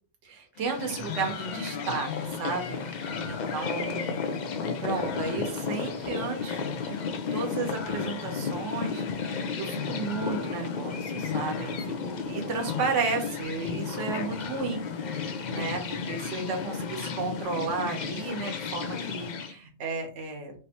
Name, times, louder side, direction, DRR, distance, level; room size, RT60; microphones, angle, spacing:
voice 1, 0.2-4.5 4.8-7.0 7.3-14.8 15.1-15.8 16.1-20.5, right 4 dB, 70° right, 3 dB, 1.1 m, -33 dB
sound 1, 0.6-19.5, left 5 dB, 70° left, 0.4 m, -33 dB
3.3 x 2.7 x 2.8 m, 0.40 s
omnidirectional pair, 1.3 m